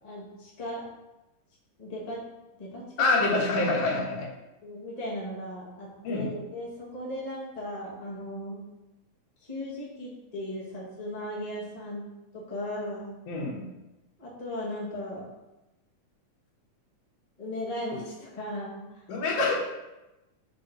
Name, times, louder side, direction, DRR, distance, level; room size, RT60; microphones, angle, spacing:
voice 1, 0.0-0.8 1.8-2.2 2.6-2.8 4.6-8.6 9.4-12.1 12.3-13.2 14.2-15.3 17.4-18.8, left 1 dB, 25° left, -5 dB, 0.8 m, -37 dB
voice 2, 3.0-4.3 6.0-6.3 13.3-13.7 19.1-19.6, left 3 dB, 85° left, -2 dB, 2.8 m, -26 dB
5.8 x 5.4 x 3.9 m, 0.99 s
omnidirectional pair, 3.6 m